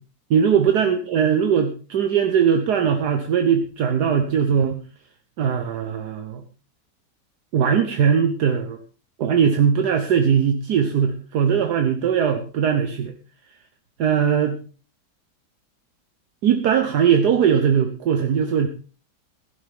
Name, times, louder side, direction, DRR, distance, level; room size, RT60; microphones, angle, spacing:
voice 1, 0.3-4.8 5.4-6.4 7.5-8.8 9.2-13.1 14.0-14.6 16.4-18.7, right 7 dB, 70° right, 7 dB, 1.5 m, -20 dB
15.5 x 12.0 x 3.6 m, 0.36 s
omnidirectional pair, 1.9 m